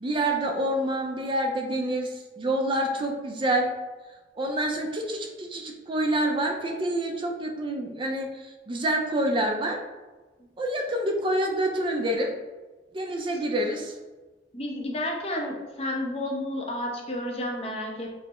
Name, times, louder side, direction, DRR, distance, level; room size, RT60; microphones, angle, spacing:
voice 1, 0.0-3.7 4.4-9.8 10.6-12.3 12.9-14.0, right 1 dB, 30° right, 2 dB, 0.4 m, -27 dB
voice 2, 14.5-18.1, left 1 dB, 35° left, 0 dB, 0.6 m, -31 dB
5.3 x 2.0 x 2.9 m, 1.2 s
head